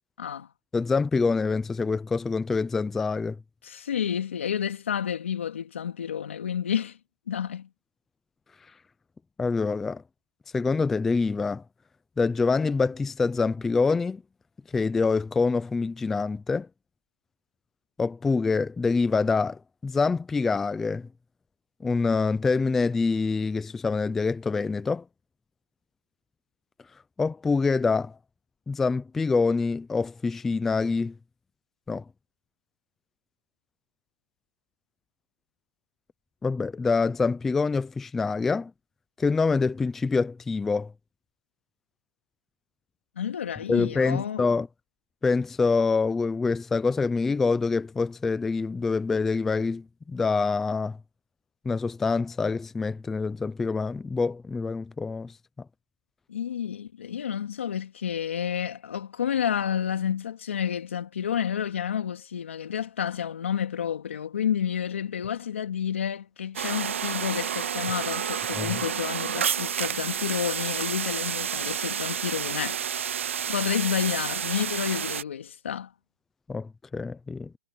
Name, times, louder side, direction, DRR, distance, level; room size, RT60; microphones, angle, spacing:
voice 1, 0.7-3.4 9.4-10.0 10.5-11.6 12.2-14.2 14.7-16.7 18.0-21.1 21.8-25.0 27.2-28.2 28.7-31.1 31.9-32.0 36.4-38.7 39.2-40.9 43.7-44.7 45.2-51.0 51.7-55.3 68.5-68.8 76.5-77.5, left 4 dB, 5° left, 0.4 m, -26 dB
voice 2, 3.6-7.0 7.3-7.7 43.2-44.4 56.3-72.8 73.5-75.9, left 8 dB, 75° left, 2.4 m, -30 dB
sound 1, 66.6-75.2, right 8 dB, 80° right, 0.6 m, -30 dB
hypercardioid pair, 175°, 7 cm